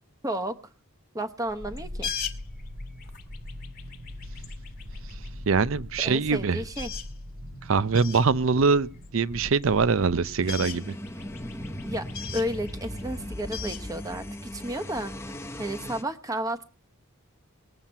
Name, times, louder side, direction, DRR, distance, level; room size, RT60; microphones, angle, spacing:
voice 1, 0.2-0.5 1.1-2.1 6.0-6.9 11.8-16.6, right 1 dB, 15° right, 0.9 m, -32 dB
sound 1, 1.5-13.8 14.1-14.2, left 1 dB, 85° right, 6.3 m, -42 dB
sound 2, 1.8-5.3 5.9-6.0 6.3-6.4 6.6-7.2 7.5-7.6 7.9-8.3 9.0-9.8 10.1-14.7, left 7 dB, 45° left, 1.4 m, -39 dB
voice 2, 5.5-6.6 7.7-10.9, right 4 dB, 65° right, 0.5 m, -23 dB
sound 3, 10.4-16.0, left 1 dB, 10° left, 0.8 m, -38 dB
19.5 x 7.4 x 5.5 m
head